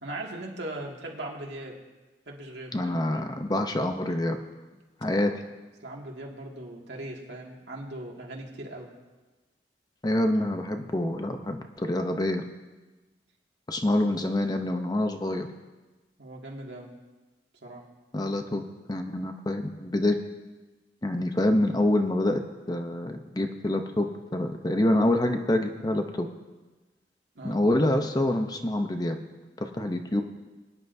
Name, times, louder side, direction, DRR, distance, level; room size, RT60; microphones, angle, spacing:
voice 1, 0.0-1.8 2.3-2.8 5.8-8.9 16.2-16.9 17.6-17.8 27.4-27.6, right 1 dB, 75° right, -1 dB, 2.1 m, -39 dB
voice 2, 2.7-4.4 5.0-5.3 10.0-12.4 13.7-15.5 18.1-18.6 18.9-20.2 21.0-22.4 22.7-26.3 27.4-29.2 29.6-30.2, left 1 dB, 20° left, 6 dB, 0.7 m, -26 dB
23.0 x 10.0 x 2.7 m, 1.2 s
head